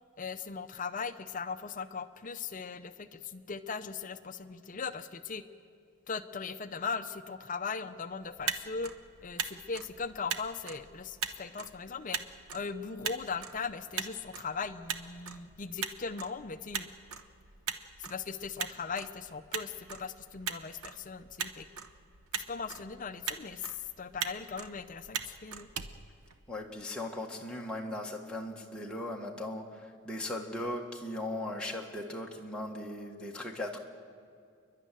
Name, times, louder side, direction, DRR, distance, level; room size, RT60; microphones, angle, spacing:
voice 1, 0.2-5.4 6.1-8.9 9.2-12.2 12.5-16.9 18.0-21.7 22.3-25.7, left 5 dB, 35° left, 11 dB, 0.5 m, -39 dB
Motor vehicle (road), 8.2-26.8, right 7 dB, 80° right, 0.9 m, -41 dB
voice 2, 26.5-33.8, left 1 dB, 5° left, -1 dB, 1.6 m, -38 dB
29.5 x 11.5 x 9.1 m, 2.3 s
head